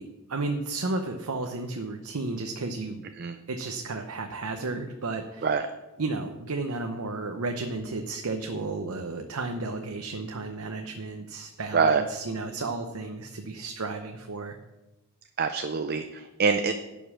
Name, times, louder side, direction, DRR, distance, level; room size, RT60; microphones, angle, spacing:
voice 1, 0.0-3.0 3.5-5.5 6.0-14.6, right 3 dB, 80° right, 5 dB, 0.8 m, -33 dB
voice 2, 15.4-16.7, right 5 dB, 45° right, 8 dB, 0.5 m, -24 dB
11.0 x 5.4 x 7.3 m, 1.0 s
head